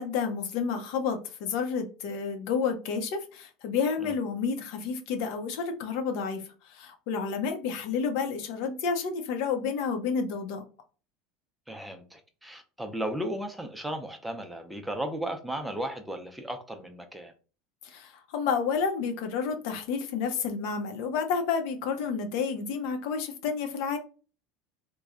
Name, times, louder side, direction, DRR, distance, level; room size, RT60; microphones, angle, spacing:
voice 1, 0.0-10.6 17.8-24.0, left 5 dB, 70° left, 0.8 m, -30 dB
voice 2, 11.7-17.3, right 1 dB, 5° right, 0.6 m, -35 dB
3.1 x 2.3 x 3.7 m
supercardioid pair, 105°, 0 cm